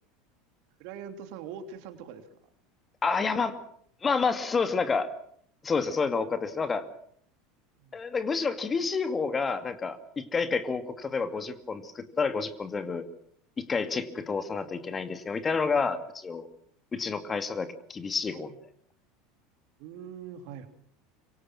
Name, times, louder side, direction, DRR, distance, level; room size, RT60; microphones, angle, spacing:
voice 1, 0.8-2.4 7.8-8.0 19.8-20.7, right 7 dB, 60° right, 8 dB, 3.0 m, -42 dB
voice 2, 3.0-3.6 4.0-5.1 5.6-6.9 7.9-13.1 13.6-16.5 16.9-18.5, left 4 dB, 25° left, 10 dB, 2.4 m, -29 dB
26.0 x 25.0 x 6.1 m, 0.66 s
figure-of-eight pair, 75°, 0 cm